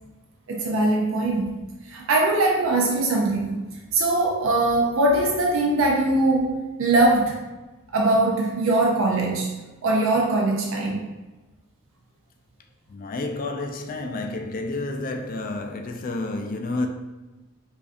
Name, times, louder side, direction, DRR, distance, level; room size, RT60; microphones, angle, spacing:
voice 1, 0.5-1.6 1.8-3.6 3.9-7.4 7.9-9.6 9.8-11.0, right 2 dB, 70° right, 0.5 m, -21 dB
voice 2, 12.9-16.9, left 2 dB, 40° left, 0.4 m, -30 dB
4.9 x 2.5 x 2.4 m
head